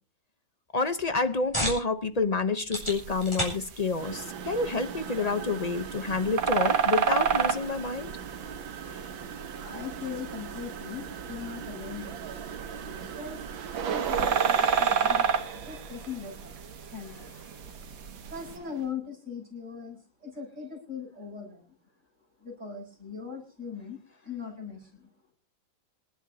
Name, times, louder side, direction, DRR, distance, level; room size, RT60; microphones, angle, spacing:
voice 1, 0.7-8.1 8.9-9.0 17.1-17.2, left 3 dB, 50° left, 10 dB, 0.4 m, -29 dB
sound 1, 0.9-16.0, equal, 15° left, 6.6 m, -42 dB
sound 2, 2.8-18.6, right 6 dB, 60° right, 1.9 m, -32 dB
sound 3, 4.0-18.9, right 8 dB, 85° right, 2.0 m, -38 dB
voice 2, 9.6-12.5 13.0-13.4 13.8-16.5 16.9-17.2 18.3-21.6 22.4-24.0 24.2-25.1, left 6 dB, 35° right, 0 dB, 6.7 m, -40 dB
26.5 x 12.0 x 2.8 m, 0.37 s
omnidirectional pair, 2.1 m